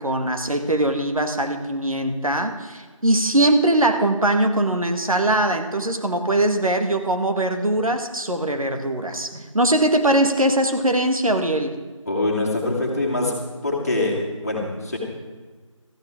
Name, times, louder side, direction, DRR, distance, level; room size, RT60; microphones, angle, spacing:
voice 1, 0.0-11.8, right 1 dB, 85° right, 5 dB, 1.8 m, -21 dB
voice 2, 12.1-13.3 13.6-14.2 14.4-15.0, left 2 dB, 30° left, -1 dB, 2.3 m, -23 dB
14.0 x 13.0 x 5.0 m, 1.4 s
figure-of-eight pair, 170°, 17 cm